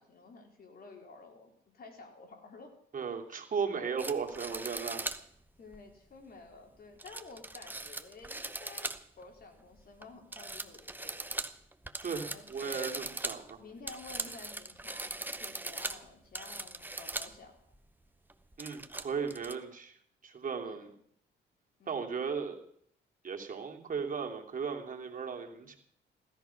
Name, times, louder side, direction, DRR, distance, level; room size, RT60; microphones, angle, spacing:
voice 1, 0.0-2.7 5.6-8.9 9.2-11.4 12.3-13.0 13.6-17.6 20.6-20.9 21.8-22.2, left 3 dB, 50° left, 3 dB, 4.2 m, -52 dB
voice 2, 2.9-5.0 12.0-13.6 18.6-19.9 20.2-20.9 21.9-22.6 23.2-25.8, right 6 dB, 40° right, 3 dB, 3.0 m, -36 dB
sound 1, 4.0-5.2 5.7-5.8 7.0-9.2 9.6-10.1 10.3-17.4 17.7-17.8 18.3-19.6, right 2 dB, 10° right, 1.0 m, -40 dB
16.5 x 13.5 x 5.9 m, 0.65 s
cardioid pair, 90°, 20 cm